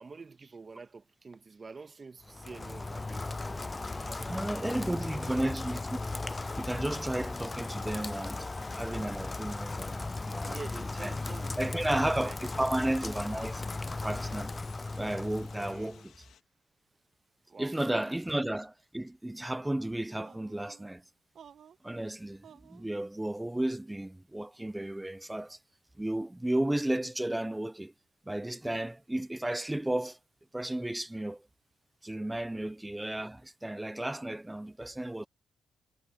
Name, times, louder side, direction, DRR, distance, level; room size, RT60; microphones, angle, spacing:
voice 1, 0.0-5.4 10.4-12.7 15.6-16.1 17.5-17.9 32.5-32.7, right 4 dB, 30° right, 1.6 m, -48 dB
Rain, 2.2-16.0, left 3 dB, 20° left, 0.3 m, -37 dB
sound 1, 3.8-16.4, left 9 dB, 70° left, 2.9 m, -60 dB
voice 2, 4.3-6.3 6.6-8.5 8.7-11.1 11.6-13.6 14.0-14.5 15.0-16.1 17.6-21.0 21.8-25.6 26.0-27.9 28.3-30.2 30.5-31.5 32.0-35.3, right 1 dB, 10° right, 0.8 m, -33 dB
sound 2, 20.2-20.9 21.3-21.9 22.4-22.9, right 8 dB, 60° right, 1.8 m, -54 dB
cardioid pair, 90°, 0 cm